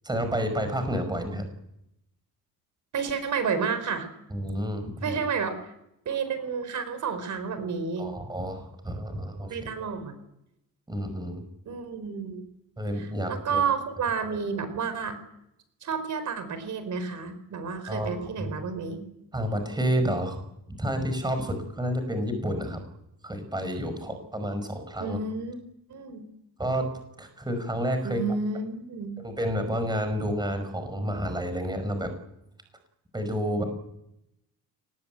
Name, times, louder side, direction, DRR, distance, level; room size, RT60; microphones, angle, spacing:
voice 1, 0.0-1.4 4.3-5.2 8.0-9.7 10.9-11.4 12.8-13.6 17.9-18.5 19.3-20.4 20.7-22.8 23.2-25.2 26.6-26.9 27.2-28.2 29.2-32.1 33.1-33.6, equal, 10° right, 8 dB, 5.4 m, -30 dB
voice 2, 2.9-4.1 5.0-5.6 6.0-8.1 9.5-10.1 11.7-12.5 13.0-15.2 15.8-19.0 25.0-25.6 25.9-26.2 28.0-29.1, right 5 dB, 55° right, 11 dB, 4.5 m, -30 dB
24.0 x 20.0 x 9.2 m, 0.83 s
cardioid pair, 130°, 35 cm